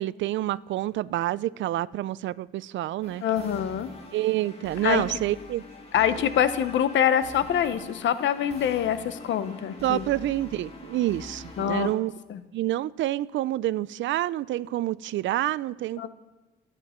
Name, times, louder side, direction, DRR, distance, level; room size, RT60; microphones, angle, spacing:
voice 1, 0.0-3.2 4.1-5.6 9.8-12.1 12.5-16.1, right 14 dB, 70° right, 20 dB, 0.4 m, -28 dB
sound 1, 3.0-11.9, left 3 dB, 30° left, 2.8 m, -44 dB
voice 2, 3.2-3.9 4.8-5.2 5.9-10.1 11.6-11.9 12.3-12.4 16.0-16.1, left 9 dB, 70° left, 12 dB, 0.9 m, -25 dB
25.0 x 9.2 x 4.4 m, 1.1 s
cardioid pair, 90°, 20 cm